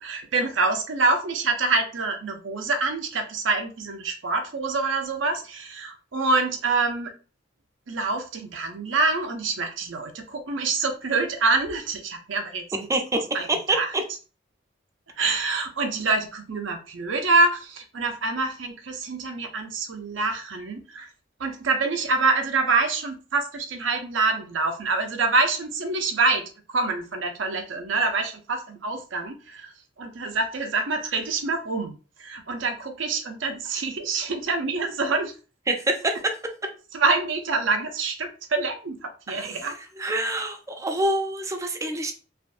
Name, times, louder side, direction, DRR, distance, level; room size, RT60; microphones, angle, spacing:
voice 1, 0.0-7.1 7.9-12.6 13.1-13.9 15.2-21.1 21.4-26.4 26.7-29.7 30.0-35.3 36.9-39.7, right 3 dB, 90° right, 5 dB, 0.7 m, -26 dB
voice 2, 12.9-14.0 35.7-36.4 36.6-36.7 39.3-39.6 40.0-42.1, right 2 dB, 15° right, 4 dB, 0.5 m, -26 dB
3.4 x 2.5 x 2.5 m, 0.36 s
head